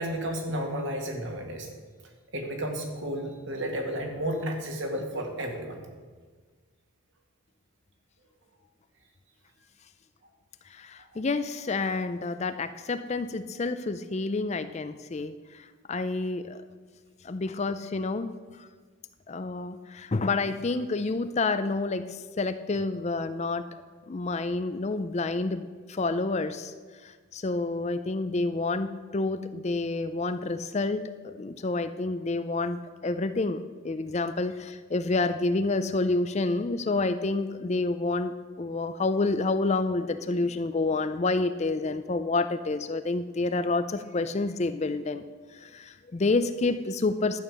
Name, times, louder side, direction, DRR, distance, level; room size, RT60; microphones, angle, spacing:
voice 1, 0.0-1.7 2.0-5.8, equal, 55° right, 2 dB, 2.0 m, -32 dB
voice 2, 10.7-16.6 17.2-18.7 19.3-23.7 24.1-26.7 27.0-45.2 45.5-47.4, left 3 dB, 30° left, 11 dB, 0.4 m, -29 dB
12.0 x 8.8 x 6.5 m, 1.5 s
head